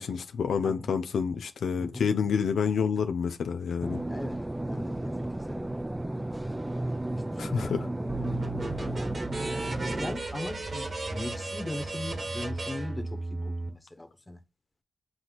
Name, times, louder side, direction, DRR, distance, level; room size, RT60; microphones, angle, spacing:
voice 1, 0.0-4.0 7.4-7.9, left 6 dB, 90° left, 0.4 m, -28 dB
voice 2, 1.8-2.1 4.1-5.7 6.1-6.4 7.1-9.0 9.8-14.4, left 2 dB, 15° left, 1.2 m, -40 dB
sound 1, 3.8-10.2, right 1 dB, 15° right, 0.5 m, -33 dB
Wind instrument woodwind instrument, 6.5-13.1, right 4 dB, 85° right, 2.0 m, -54 dB
sound 2, 8.1-13.7, right 2 dB, 55° right, 1.4 m, -35 dB
7.7 x 3.0 x 4.0 m
cardioid pair, 60°, 0 cm